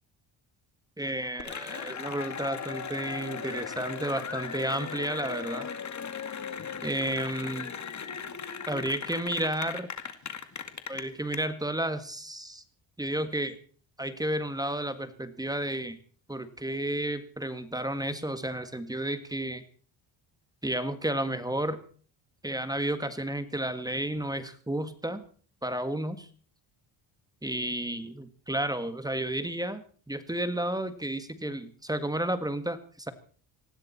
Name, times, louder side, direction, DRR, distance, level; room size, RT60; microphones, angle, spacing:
voice 1, 1.0-5.7 6.8-7.7 8.7-9.9 10.9-12.6 13.0-13.6 14.0-16.0 16.3-19.6 20.6-21.8 22.4-25.2 25.6-26.3 27.4-33.1, right 1 dB, 10° right, 11 dB, 1.7 m, -32 dB
Cheering / Applause, 1.4-11.4, left 6 dB, 40° left, 2.2 m, -37 dB
20.0 x 15.5 x 4.3 m, 0.43 s
cardioid pair, 115°, 46 cm